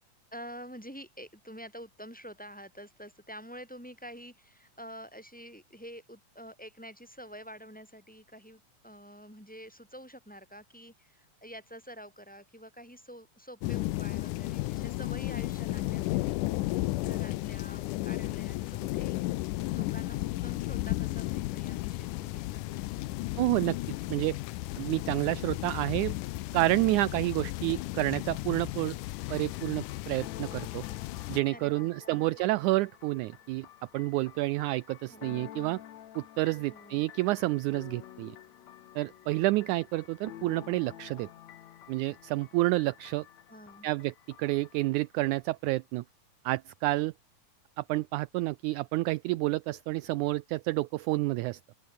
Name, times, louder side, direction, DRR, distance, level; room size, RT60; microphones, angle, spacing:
voice 1, 0.3-16.4 17.0-19.2 19.7-23.1 31.5-32.3 35.1-35.5 36.7-37.0 43.5-43.9, equal, ahead, 6.8 m, -48 dB
sound 1, 13.6-31.4, left 18 dB, 80° left, 2.1 m, -34 dB
voice 2, 23.4-23.8 24.1-24.4 24.8-26.2 26.5-29.0 29.3-30.8 31.3-33.7 33.9-35.8 36.2-38.4 39.0-41.3 41.9-43.3 43.8-44.1 44.4-46.0 46.5-47.1 47.8-51.6, right 19 dB, 80° right, 1.9 m, -29 dB
sound 2, 29.1-45.2, left 11 dB, 65° left, 2.3 m, -50 dB
open air
omnidirectional pair, 3.8 m